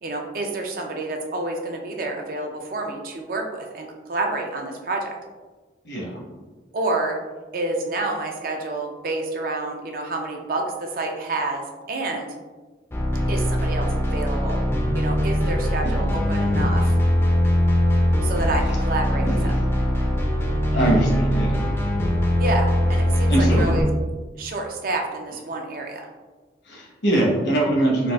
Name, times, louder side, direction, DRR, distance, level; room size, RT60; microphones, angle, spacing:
voice 1, 0.0-5.2 6.7-7.2 7.5-12.3 13.3-14.6 14.9-17.0 18.2-19.5 22.4-23.9 24.4-26.1, right 2 dB, 50° right, 2 dB, 0.4 m, -28 dB
sound 1, 12.9-23.8, equal, 15° left, 0.4 m, -21 dB
voice 2, 20.7-21.7 23.3-23.7 26.7-28.1, right 1 dB, 70° left, -2 dB, 0.9 m, -22 dB
4.0 x 2.4 x 2.3 m, 1.3 s
head